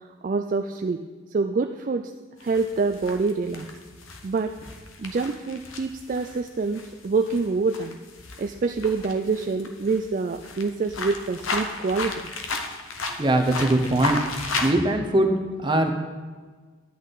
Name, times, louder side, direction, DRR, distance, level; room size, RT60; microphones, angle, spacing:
voice 1, 0.2-1.0 1.3-2.1 2.4-3.7 4.2-4.5 5.0-8.0 8.4-12.2, right 4 dB, 40° right, 6 dB, 0.3 m, -26 dB
sound 1, 2.4-14.7, left 3 dB, 90° left, 1.0 m, -34 dB
voice 2, 13.2-14.2 14.6-15.3 15.6-15.9, right 1 dB, 25° right, 3 dB, 0.8 m, -21 dB
11.0 x 8.4 x 4.0 m, 1.4 s
head